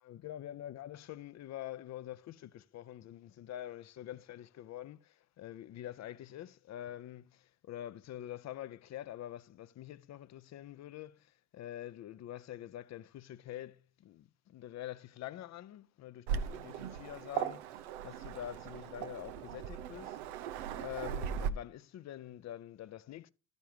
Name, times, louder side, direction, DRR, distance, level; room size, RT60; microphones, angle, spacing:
voice 1, 0.0-20.2 20.8-23.3, left 12 dB, 55° left, 0.8 m, -46 dB
Waves surf, 16.3-21.5, right 8 dB, 90° right, 0.7 m, -38 dB
12.5 x 5.4 x 4.6 m
hypercardioid pair, 65°, 33 cm